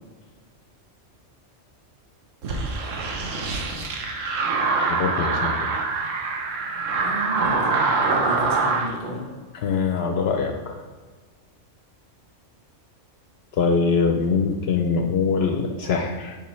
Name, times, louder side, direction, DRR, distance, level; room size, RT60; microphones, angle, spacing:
sound 1, 2.4-8.9, right 4 dB, 85° right, 1.1 m, -24 dB
voice 1, 4.9-5.7 9.6-10.8 13.6-16.4, left 5 dB, 65° left, 4 dB, 0.7 m, -23 dB
voice 2, 7.0-9.3, equal, 50° right, -4 dB, 1.7 m, -31 dB
6.9 x 5.7 x 3.1 m, 1.4 s
omnidirectional pair, 1.3 m